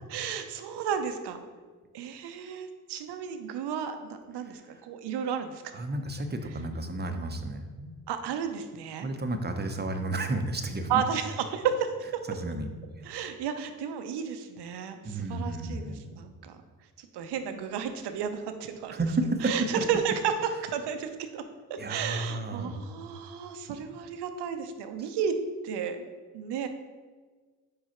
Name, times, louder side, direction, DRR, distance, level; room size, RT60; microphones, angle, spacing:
voice 1, 0.1-1.4 1.9-5.6 8.1-9.1 10.9-11.9 13.0-16.6 17.0-19.0 19.4-20.3 20.6-21.4 21.7-25.3 25.6-26.0 26.3-26.7, right 7 dB, 70° right, 8 dB, 0.7 m, -33 dB
voice 2, 4.4-4.8 5.7-7.9 9.0-11.1 12.3-12.7 13.0-13.1 15.0-16.0 18.9-19.7 21.8-22.7, right 2 dB, 25° right, 6 dB, 0.8 m, -32 dB
4.8 x 4.6 x 4.4 m, 1.5 s
hypercardioid pair, 45°, 42 cm